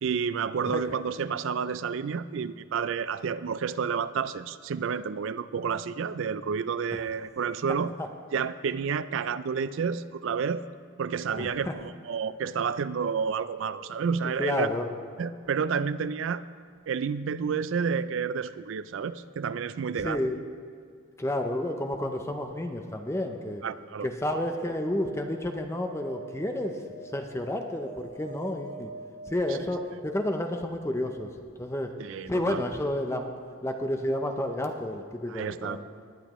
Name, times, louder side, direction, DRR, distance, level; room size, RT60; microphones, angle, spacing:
voice 1, 0.0-7.9 8.3-10.6 11.0-14.7 15.2-16.4 16.9-20.3 23.6-24.1 32.0-32.6 35.3-35.8, right 6 dB, 60° right, 14 dB, 0.4 m, -30 dB
voice 2, 11.4-11.8 13.7-13.8 14.4-14.9 20.0-20.4 21.2-23.6 24.0-26.8 27.1-28.9 29.3-31.9 32.3-33.3 33.6-35.9, left 1 dB, 15° left, 5 dB, 0.6 m, -31 dB
sound 1, 24.7-30.9 33.2-33.3 33.5-33.6, right 3 dB, 85° left, 3.0 m, -47 dB
19.5 x 10.0 x 3.1 m, 2.1 s
head